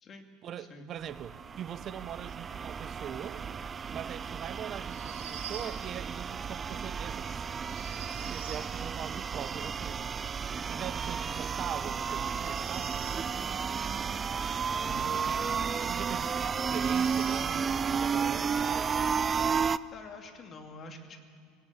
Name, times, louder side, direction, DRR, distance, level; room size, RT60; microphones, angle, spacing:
voice 1, 0.4-3.4 3.9-7.4 8.1-10.1 10.7-13.1 14.9-19.1, right 10 dB, 45° right, 13 dB, 0.8 m, -42 dB
sound 1, 1.0-19.8, right 6 dB, 30° right, 0.5 m, -32 dB
sound 2, 4.8-5.8 7.6-8.7 12.2-13.3 15.5-15.6 16.5-17.5, right 8 dB, 85° right, 3.4 m, -45 dB
voice 2, 14.8-15.1 19.9-21.3, left 2 dB, 35° left, 5 dB, 2.7 m, -47 dB
19.0 x 17.5 x 8.3 m, 2.2 s
hypercardioid pair, 95°, 0 cm